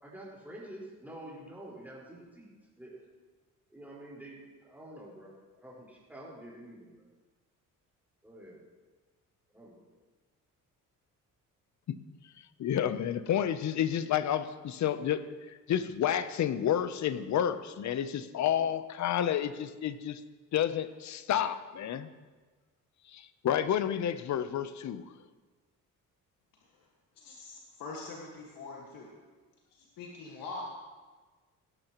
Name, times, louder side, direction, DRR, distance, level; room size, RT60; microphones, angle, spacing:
voice 1, 0.0-3.0 3.7-7.1 8.2-8.8 9.5-9.8, right 1 dB, 5° right, -5 dB, 4.5 m, -48 dB
voice 2, 12.6-20.2 20.5-22.1 23.1-25.0, left 10 dB, 55° left, 13 dB, 0.7 m, -30 dB
voice 3, 27.2-29.1 29.7-30.6, left 3 dB, 85° left, -2 dB, 1.8 m, -43 dB
18.0 x 12.0 x 3.0 m, 1.3 s
cardioid pair, 115°, 33 cm